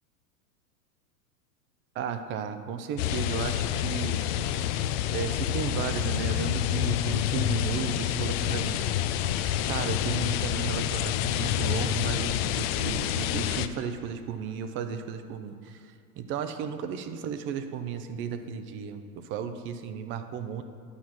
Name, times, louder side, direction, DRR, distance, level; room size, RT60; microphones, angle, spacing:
voice 1, 1.9-4.2 5.1-8.8 9.7-20.6, right 7 dB, 30° right, 9 dB, 0.5 m, -34 dB
sound 1, 3.0-13.7, left 11 dB, 45° left, 0.5 m, -28 dB
9.7 x 6.2 x 5.9 m, 2.2 s
hypercardioid pair, 120°, 44 cm